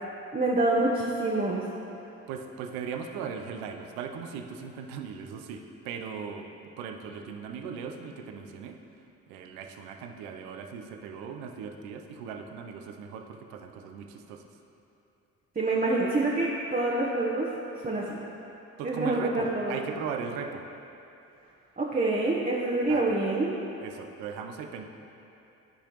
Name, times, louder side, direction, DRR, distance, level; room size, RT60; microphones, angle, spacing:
voice 1, 0.3-1.6 15.6-17.5 17.8-18.2 18.8-19.8 21.8-23.6, right 2 dB, 25° right, -5 dB, 1.0 m, -26 dB
voice 2, 2.3-8.8 9.3-14.4 18.8-20.6 22.9-23.2 23.8-24.8, right 6 dB, 80° right, 4 dB, 0.7 m, -38 dB
12.5 x 4.9 x 3.0 m, 2.8 s
hypercardioid pair, 50°, 36 cm